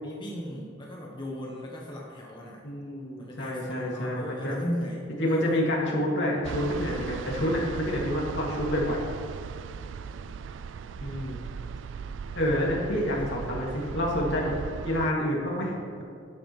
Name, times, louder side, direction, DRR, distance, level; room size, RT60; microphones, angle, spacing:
voice 1, 0.0-2.6 3.2-5.6 12.9-13.3, equal, 25° left, -3 dB, 1.0 m, -36 dB
voice 2, 2.6-4.6 5.2-9.0 11.0-11.4 12.3-14.5 14.8-16.0, equal, 65° left, -3 dB, 2.5 m, -28 dB
sound 1, 6.4-15.1, right 6 dB, 70° right, 0.3 m, -38 dB
12.0 x 10.0 x 3.3 m, 2.3 s
head